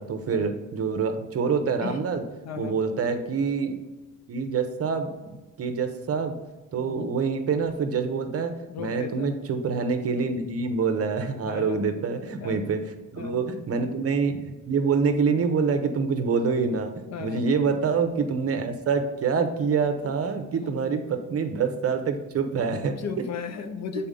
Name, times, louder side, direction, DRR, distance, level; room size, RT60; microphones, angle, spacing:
voice 1, 0.0-2.2 2.6-3.8 4.3-5.1 5.6-6.4 6.7-12.8 13.1-23.0, right 5 dB, 45° right, 6 dB, 0.8 m, -26 dB
voice 2, 2.4-2.8 6.8-7.1 8.7-9.3 11.5-11.9 12.4-12.6 13.2-13.4 17.1-17.5 20.6-20.9 23.0-24.1, left 6 dB, 55° left, 8 dB, 0.7 m, -35 dB
6.8 x 4.1 x 3.7 m, 1.2 s
cardioid pair, 115°, 32 cm